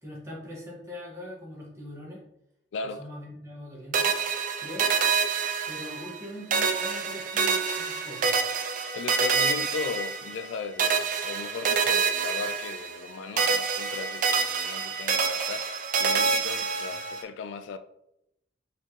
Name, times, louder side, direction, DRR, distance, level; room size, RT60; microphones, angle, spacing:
voice 1, 0.0-2.2 2.8-4.1 4.6-4.9 5.7-8.3, left 1 dB, 15° right, 1.5 m, -42 dB
sound 1, 3.9-6.2 6.5-10.5 10.8-13.1 13.4-17.2, right 5 dB, 40° right, 0.4 m, -27 dB
voice 2, 8.9-17.8, left 5 dB, 70° left, 0.3 m, -37 dB
4.2 x 3.8 x 3.1 m
head